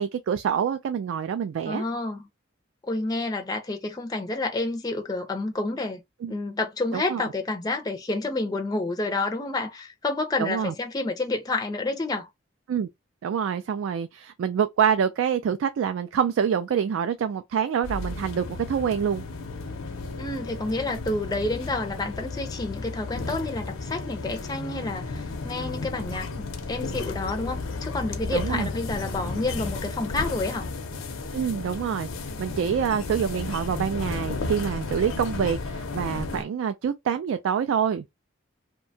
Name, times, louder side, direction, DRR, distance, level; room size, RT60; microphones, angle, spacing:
voice 1, 0.0-1.8 6.2-6.3 6.9-7.3 10.4-10.7 12.7-12.9 13.2-19.2 28.3-28.7 31.3-32.1 32.4-38.0, right 7 dB, 80° right, 0.3 m, -26 dB
voice 2, 1.6-2.2 2.8-6.0 6.3-12.3 20.2-30.7, left 2 dB, 20° left, 0.4 m, -29 dB
sound 1, 17.8-36.4, left 3 dB, 85° left, 0.6 m, -33 dB
2.7 x 2.2 x 2.6 m
head